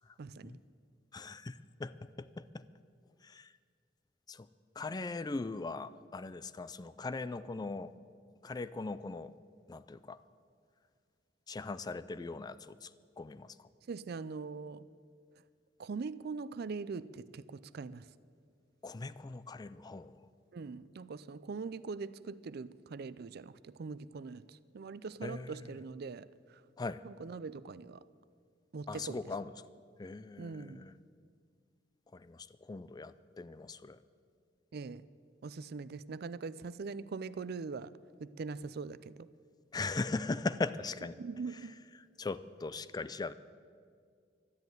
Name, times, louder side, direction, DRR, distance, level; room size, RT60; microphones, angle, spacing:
voice 1, 0.2-0.6 13.9-14.9 15.8-18.0 20.5-26.3 27.0-28.0 28.7-29.2 30.4-30.9 34.7-35.0 35.4-37.9 38.2-39.3 41.2-41.8, right 4 dB, 55° right, 17 dB, 0.4 m, -42 dB
voice 2, 1.1-2.6 3.2-3.5 4.3-4.5 4.8-7.9 8.4-9.3 9.7-10.2 11.5-12.9 13.2-13.7 18.8-20.2 25.2-25.7 26.8-27.0 28.9-29.5 30.0-30.9 32.1-34.0 39.7-41.2 42.2-43.3, left 3 dB, 20° left, 15 dB, 0.4 m, -40 dB
12.5 x 10.5 x 9.2 m, 2.1 s
head